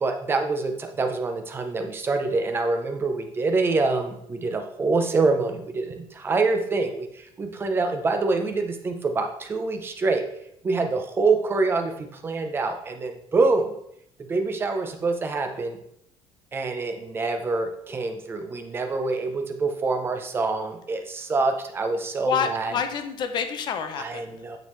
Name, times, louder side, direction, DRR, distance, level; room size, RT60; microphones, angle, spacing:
voice 1, 0.0-10.2 10.6-13.7 14.3-15.8 16.5-22.7 24.0-24.6, right 3 dB, 20° right, 5 dB, 0.6 m, -26 dB
voice 2, 22.2-24.4, left 7 dB, 40° left, 8 dB, 0.6 m, -28 dB
8.9 x 3.6 x 3.1 m, 0.73 s
cardioid pair, 175°, 11 cm